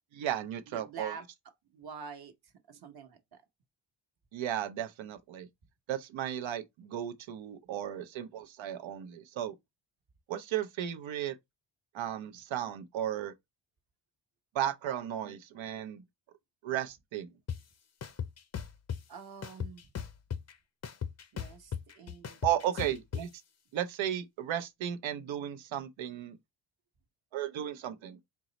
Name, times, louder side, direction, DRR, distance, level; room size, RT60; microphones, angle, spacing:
voice 1, 0.1-1.2 4.3-5.5 5.9-9.5 10.3-11.3 11.9-13.3 14.5-16.0 16.6-17.3 22.4-23.3 23.7-26.4 27.3-28.2, right 11 dB, 75° right, 0.8 m, -35 dB
voice 2, 0.7-1.3 1.7-3.4 19.1-19.9 21.3-22.4 22.8-22.9, right 6 dB, 50° right, 1.1 m, -46 dB
sound 1, 17.5-17.6 18.0-19.0 19.4-20.5 20.8-23.2, left 8 dB, 35° left, 0.6 m, -36 dB
4.6 x 2.0 x 3.9 m
cardioid pair, 80°, 47 cm